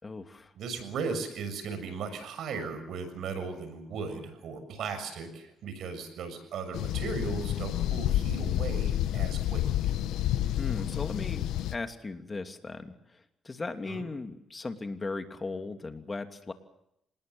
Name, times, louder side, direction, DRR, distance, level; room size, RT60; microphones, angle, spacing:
voice 1, 0.0-0.5 10.6-11.5 11.7-16.5, left 3 dB, 25° left, 7 dB, 2.9 m, -37 dB
voice 2, 0.6-9.6 13.9-14.0, right 5 dB, 70° right, 9 dB, 7.0 m, -37 dB
sound 1, 6.7-11.7, left 12 dB, 85° left, 1.2 m, -29 dB
26.5 x 20.5 x 7.1 m, 0.78 s
cardioid pair, 90°, 0 cm